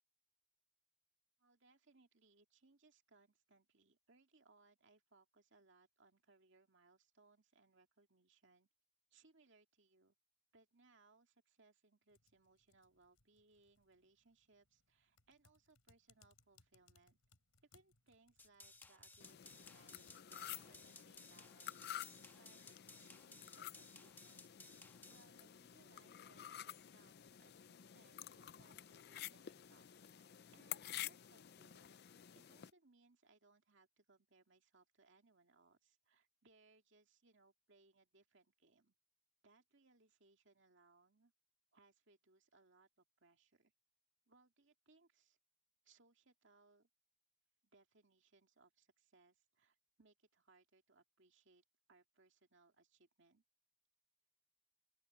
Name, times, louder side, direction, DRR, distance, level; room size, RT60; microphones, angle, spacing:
voice 1, 1.4-8.7 9.1-10.2 10.5-17.2 17.7-24.6 25.1-32.0 32.3-39.0 39.4-41.3 41.7-43.7 44.3-45.4 45.8-46.9 47.6-53.4, right 3 dB, 60° right, 2.4 m, -71 dB
Typing, 12.1-30.1, left 5 dB, 90° left, 5.8 m, -76 dB
sound 1, 18.4-25.2, left 2 dB, 10° left, 1.2 m, -60 dB
sound 2, 19.2-32.7, left 11 dB, 50° left, 0.5 m, -52 dB
open air
head